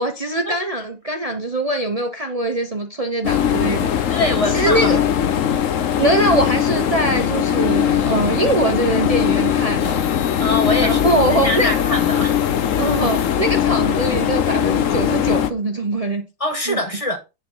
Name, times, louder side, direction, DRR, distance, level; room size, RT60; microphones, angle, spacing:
voice 1, 0.0-4.2 4.5-5.0 6.0-10.0 10.8-11.8 12.8-16.2 16.7-16.8, right 2 dB, 60° right, 0.3 m, -22 dB
sound 1, 3.2-15.5, left 9 dB, 60° left, 0.8 m, -20 dB
voice 2, 4.1-5.0 10.4-12.4 16.4-17.2, left 1 dB, 20° left, 1.4 m, -23 dB
10.0 x 4.5 x 5.7 m
omnidirectional pair, 2.3 m